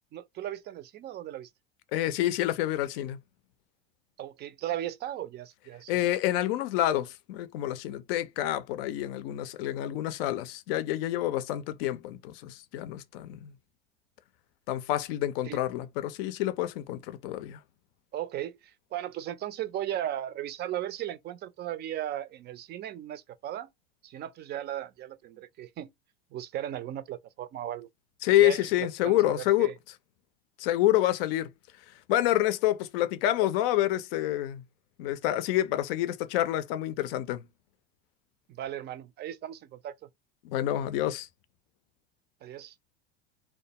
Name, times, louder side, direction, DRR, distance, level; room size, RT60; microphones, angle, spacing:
voice 1, 0.1-1.5 4.2-5.9 15.5-15.6 18.1-23.7 24.0-25.9 26.3-27.9 28.4-29.7 38.5-40.0 42.4-42.7, right 12 dB, 35° right, 0.4 m, -36 dB
voice 2, 1.9-3.2 5.9-13.5 14.7-17.6 28.2-29.7 30.6-31.5 31.9-34.6 35.0-37.4 40.4-41.3, left 14 dB, 75° left, 0.5 m, -28 dB
2.2 x 2.1 x 2.8 m
hypercardioid pair, 90°, 29 cm